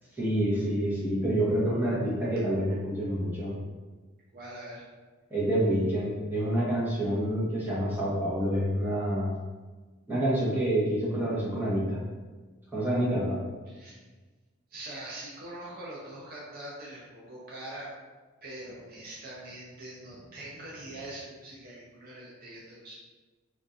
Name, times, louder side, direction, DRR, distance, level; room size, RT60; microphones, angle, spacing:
voice 1, 0.2-3.5 5.3-9.3 10.1-12.0 12.7-13.4, right 1 dB, 10° right, -8 dB, 1.0 m, -27 dB
voice 2, 4.3-4.8 13.7-14.0 14.7-17.9 18.4-23.0, right 1 dB, 45° right, -5 dB, 0.6 m, -43 dB
3.4 x 2.5 x 2.7 m, 1.3 s
head